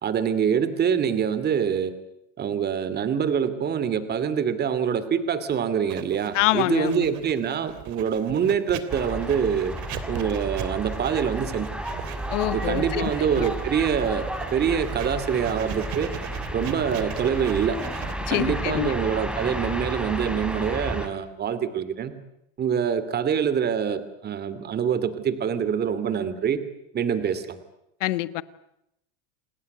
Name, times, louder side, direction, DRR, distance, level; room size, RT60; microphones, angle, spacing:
voice 1, 0.0-1.9 2.4-9.7 10.1-11.7 12.5-16.1 16.5-17.8 18.3-22.1 22.6-26.6 26.9-27.6, right 7 dB, 25° right, 2.5 m, -25 dB
Writing, 5.9-20.6, right 11 dB, 50° right, 3.1 m, -39 dB
voice 2, 6.3-7.0 12.3-13.4 18.2-18.9 28.0-28.4, left 17 dB, 85° left, 1.4 m, -26 dB
sound 1, 8.9-21.1, right 1 dB, 5° right, 3.6 m, -32 dB
29.0 x 19.0 x 9.6 m
supercardioid pair, 140°, 36 cm